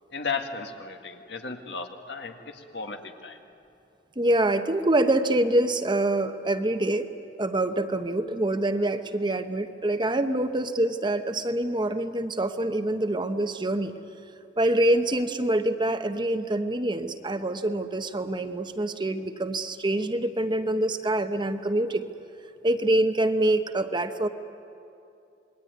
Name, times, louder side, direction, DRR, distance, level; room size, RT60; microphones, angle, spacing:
voice 1, 0.1-3.4, left 4 dB, 75° left, 5 dB, 1.9 m, -35 dB
voice 2, 4.2-7.1 7.4-13.9 14.6-22.1 22.6-24.3, right 1 dB, 25° right, 8 dB, 1.0 m, -25 dB
27.0 x 21.5 x 9.5 m, 2.7 s
head